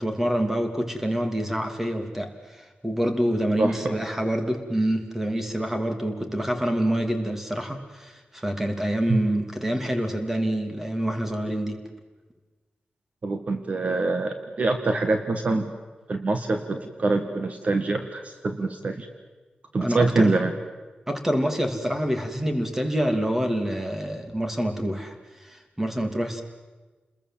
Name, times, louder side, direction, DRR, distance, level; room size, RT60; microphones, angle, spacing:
voice 1, 0.0-11.8 19.8-20.4 21.1-25.1 25.4-26.4, equal, 10° right, 5 dB, 2.7 m, -26 dB
voice 2, 3.6-4.0 9.1-9.2 13.2-15.7 16.1-19.1 19.7-20.5, right 3 dB, 45° right, 6 dB, 1.8 m, -25 dB
30.0 x 21.5 x 7.5 m, 1.3 s
wide cardioid pair, 155°, 3 cm